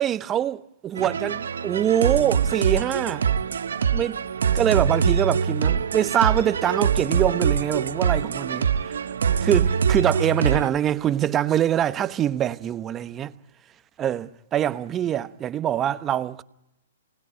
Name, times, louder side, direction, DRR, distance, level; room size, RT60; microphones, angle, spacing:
voice 1, 0.0-3.2 3.9-4.2 4.5-9.0 9.4-13.3 14.0-16.4, right 11 dB, 25° right, 1.0 m, -24 dB
sound 1, 1.0-10.7, right 7 dB, 75° right, 1.0 m, -24 dB
29.5 x 20.0 x 9.9 m
hypercardioid pair, 120°, 0 cm